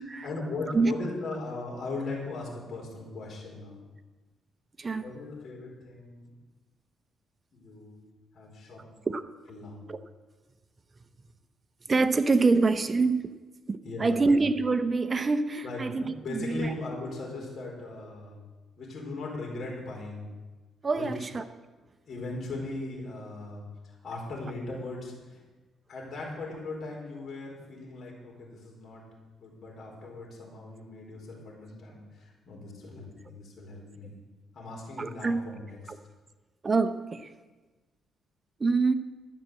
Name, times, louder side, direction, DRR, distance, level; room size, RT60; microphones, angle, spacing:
voice 1, 0.2-3.9 5.0-6.3 7.5-8.0 8.3-8.9 9.5-9.8 13.8-14.4 15.6-18.4 18.8-20.3 20.9-21.3 22.1-25.4 25.9-29.0 29.4-34.2 34.5-35.9, left 2 dB, 50° left, 4.6 m, -38 dB
voice 2, 11.9-13.3 13.7-16.7 20.8-21.4 35.0-35.4 36.6-37.3 38.6-38.9, right 3 dB, 30° right, 0.8 m, -25 dB
12.5 x 7.5 x 7.9 m
cardioid pair, 90°, 0 cm